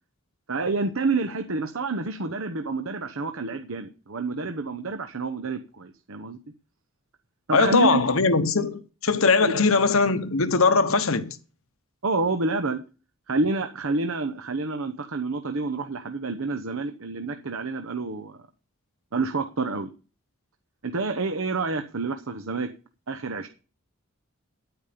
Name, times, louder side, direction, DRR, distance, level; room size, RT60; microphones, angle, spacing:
voice 1, 0.5-6.4 7.5-8.0 9.4-9.5 12.0-12.8 13.3-18.4 19.1-19.9 20.8-22.7 23.1-23.5, right 3 dB, 60° right, 0.9 m, -28 dB
voice 2, 7.5-11.4, left 4 dB, 65° left, 1.1 m, -21 dB
10.0 x 9.2 x 5.2 m
head